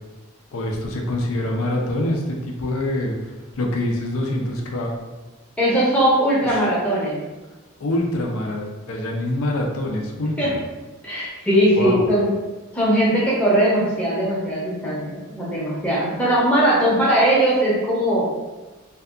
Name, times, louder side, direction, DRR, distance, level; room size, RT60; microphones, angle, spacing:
voice 1, 0.5-4.9 6.4-6.7 7.8-10.6 11.7-12.0, left 1 dB, 75° left, 0 dB, 0.4 m, -25 dB
voice 2, 5.6-7.2 10.4-10.5 11.0-12.3 12.7-18.3, right 1 dB, 5° left, -8 dB, 0.6 m, -19 dB
2.6 x 2.2 x 2.4 m, 1.2 s
head